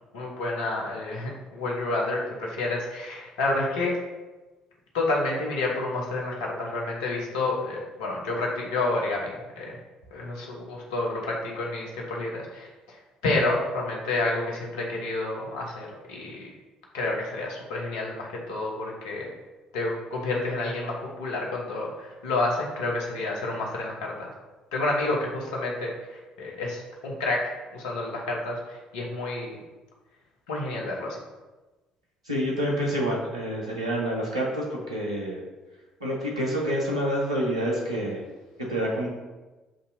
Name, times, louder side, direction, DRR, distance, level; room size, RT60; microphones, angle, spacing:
voice 1, 0.1-4.0 4.9-9.7 10.1-13.0 13.2-16.5 16.9-19.3 19.7-24.3 24.7-29.6 30.5-31.2, left 2 dB, 70° left, -2 dB, 0.9 m, -29 dB
voice 2, 32.2-35.4 36.0-38.2 38.6-39.1, equal, 85° right, -3 dB, 0.8 m, -27 dB
7.3 x 2.7 x 2.6 m, 1.2 s
figure-of-eight pair, 50°, 3 cm